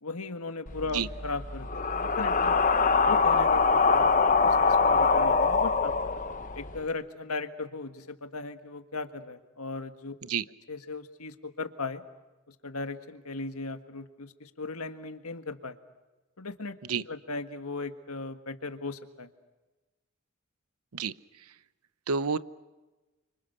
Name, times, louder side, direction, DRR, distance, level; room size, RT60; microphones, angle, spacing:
voice 1, 0.0-2.6 3.0-4.1 4.4-5.9 6.5-10.1 10.7-12.0 12.5-15.8 16.4-16.7 17.1-19.3, left 3 dB, 80° left, 9 dB, 1.7 m, -37 dB
sound 1, 0.7-6.8, left 4 dB, 35° left, 1.1 m, -24 dB
voice 2, 22.1-22.4, right 5 dB, 85° right, 15 dB, 0.8 m, -28 dB
29.0 x 25.5 x 6.8 m, 1.2 s
head